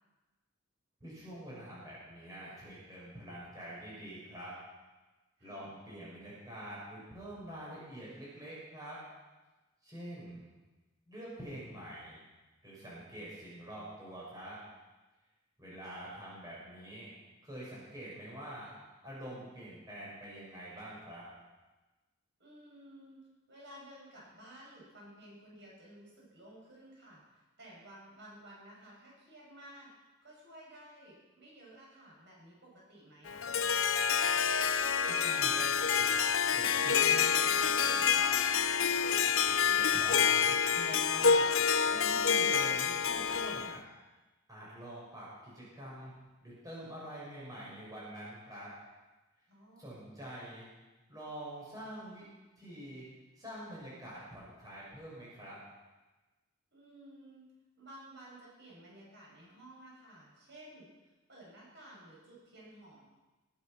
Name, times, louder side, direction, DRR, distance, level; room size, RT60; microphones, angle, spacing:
voice 1, 1.0-4.5 5.4-9.0 9.8-10.4 11.1-12.2 12.6-14.6 15.6-17.1 17.4-18.7 19.0-21.2 35.1-36.2 36.5-38.4 39.4-41.5 41.8-43.8 44.5-46.1 46.4-48.7 49.8-50.7 51.1-52.2 52.6-53.1 53.4-55.6, right 1 dB, 20° right, -7 dB, 6.7 m, -46 dB
voice 2, 5.4-5.7 22.4-23.2 23.5-29.9 30.2-33.8 39.1-39.5 49.5-50.0 56.7-57.5 57.8-60.9 61.3-63.0, right 1 dB, 55° right, -5 dB, 7.6 m, -54 dB
Harp, 33.3-43.8, left 7 dB, 75° left, 0.7 m, -28 dB
20.5 x 10.5 x 6.0 m, 1.1 s
head